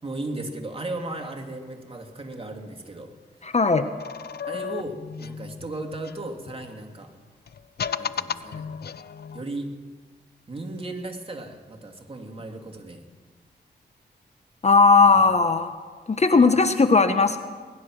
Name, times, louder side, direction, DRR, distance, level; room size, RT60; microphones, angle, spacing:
voice 1, 0.0-3.1 4.5-7.1 8.0-8.7 9.3-9.7 10.5-13.0 15.0-15.2, right 2 dB, 30° right, 3 dB, 2.5 m, -36 dB
voice 2, 3.4-3.8 14.6-15.7 16.1-17.4, left 4 dB, 35° left, 10 dB, 1.0 m, -17 dB
sound 1, 4.0-6.7 7.5-9.4, left 7 dB, 60° left, 0.6 m, -34 dB
20.5 x 11.0 x 6.3 m, 1.5 s
cardioid pair, 55°, 18 cm